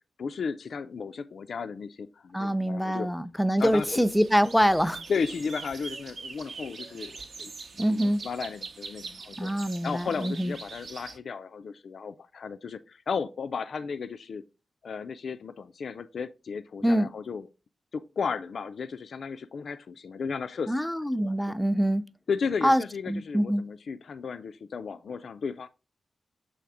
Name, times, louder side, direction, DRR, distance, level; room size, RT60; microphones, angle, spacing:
voice 1, 0.2-3.1 3.6-4.0 5.1-7.5 7.9-9.5 9.8-14.4 14.8-17.5 17.9-20.7 21.3-21.5 22.3-25.7, left 5 dB, 75° left, 0.3 m, -34 dB
voice 2, 2.3-5.0 7.8-8.3 9.4-10.5 16.8-17.1 20.7-22.0 22.6-23.7, equal, 5° left, 0.4 m, -25 dB
sound 1, 3.6-11.2, right 4 dB, 70° right, 0.8 m, -43 dB
7.1 x 3.3 x 4.7 m
cardioid pair, 80°, 0 cm